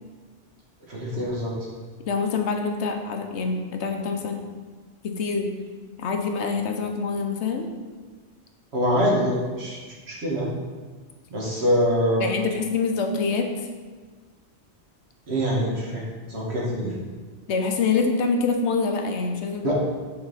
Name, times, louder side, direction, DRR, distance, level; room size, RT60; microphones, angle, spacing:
voice 1, 0.9-1.5 8.7-9.8 10.1-10.5 11.3-12.3 15.3-16.0 16.3-16.9 19.6-19.7, equal, 65° right, -5 dB, 1.8 m, -24 dB
voice 2, 2.1-4.4 5.0-5.5 6.0-7.7 12.2-13.5 17.5-19.7, left 4 dB, 75° left, 4 dB, 1.0 m, -25 dB
7.9 x 3.8 x 4.1 m, 1.4 s
omnidirectional pair, 1.2 m